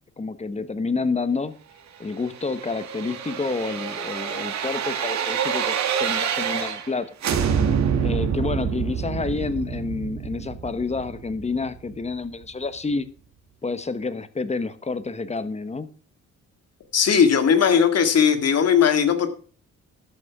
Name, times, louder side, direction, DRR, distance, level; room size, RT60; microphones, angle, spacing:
voice 1, 0.2-1.5 2.0-7.1 8.0-13.1 13.6-15.9, left 4 dB, 20° left, 12 dB, 1.2 m, -29 dB
sound 1, 2.2-6.9 7.2-12.1 12.4-12.5, right 7 dB, 65° right, 1.9 m, -27 dB
voice 2, 16.9-19.3, left 7 dB, 55° left, 8 dB, 2.0 m, -18 dB
13.0 x 6.3 x 5.9 m, 0.41 s
cardioid pair, 90°, 30 cm